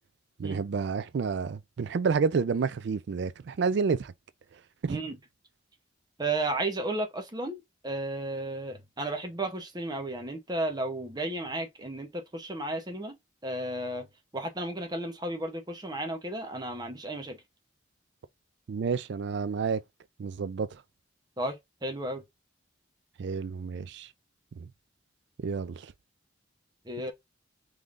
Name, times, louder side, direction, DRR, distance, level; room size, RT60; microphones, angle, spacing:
voice 1, 0.4-4.1 4.8-5.0 18.7-19.8 20.2-20.8 23.2-24.1 24.6-24.7 25.4-25.9, right 5 dB, 60° right, 0.3 m, -29 dB
voice 2, 6.2-13.2 13.4-14.1 14.3-17.4 21.4-22.2 26.9-27.1, right 2 dB, 20° right, 0.7 m, -33 dB
3.6 x 3.2 x 2.5 m
head